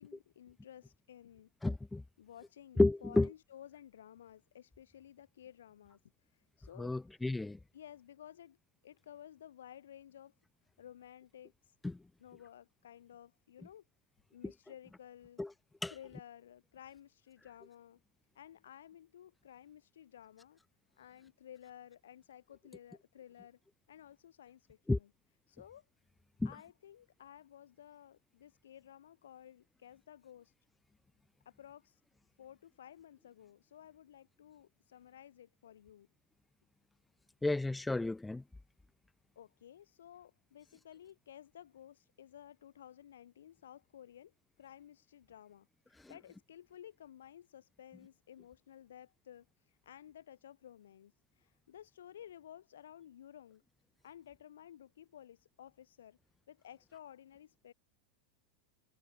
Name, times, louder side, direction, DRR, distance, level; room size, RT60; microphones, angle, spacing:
voice 1, 0.0-1.5 2.2-7.3 7.7-8.6 8.8-10.3 10.8-11.7 12.2-13.8 14.3-15.5 15.9-18.0 18.3-20.6 21.0-23.6 23.9-25.1 25.5-25.8 26.4-30.5 31.5-32.0 32.4-36.1 39.4-53.6 54.0-56.2 56.5-57.7, left 10 dB, 60° left, 4.0 m, -55 dB
voice 2, 1.6-2.0 2.8-3.3 6.8-7.6 11.8-12.0 14.4-14.5 15.4-15.5 15.8-15.9 24.9-25.0 26.4-26.5 37.4-38.4, left 2 dB, 5° left, 0.4 m, -31 dB
figure-of-eight pair, 90°, 0 cm